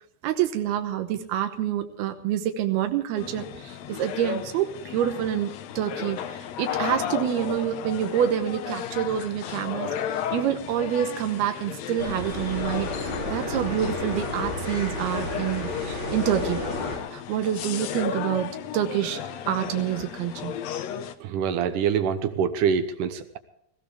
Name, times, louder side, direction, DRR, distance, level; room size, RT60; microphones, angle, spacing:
voice 1, 0.2-16.6 17.1-19.2 19.5-20.6, right 10 dB, 85° right, 7 dB, 3.0 m, -27 dB
sound 1, 3.2-21.2, left 9 dB, 90° left, 1.5 m, -34 dB
sound 2, 12.0-17.0, left 2 dB, 30° left, 4.8 m, -32 dB
voice 2, 21.2-23.4, right 7 dB, 70° right, 10 dB, 2.1 m, -25 dB
20.0 x 15.0 x 3.3 m, 0.77 s
omnidirectional pair, 4.4 m